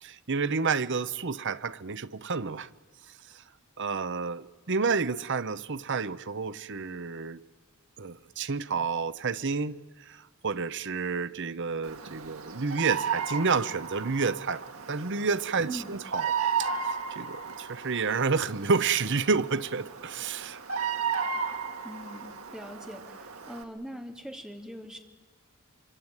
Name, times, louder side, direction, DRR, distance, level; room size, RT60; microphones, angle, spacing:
voice 1, 0.0-2.7 3.3-3.4 3.8-7.4 8.0-9.8 10.1-16.3 16.6-20.6, right 4 dB, 55° right, 0.9 m, -30 dB
Bird vocalization bird call bird song, 11.8-23.6, right 6 dB, 80° right, 2.3 m, -34 dB
voice 2, 15.7-16.0 21.8-25.0, equal, 5° right, 3.0 m, -42 dB
25.5 x 25.0 x 9.1 m
head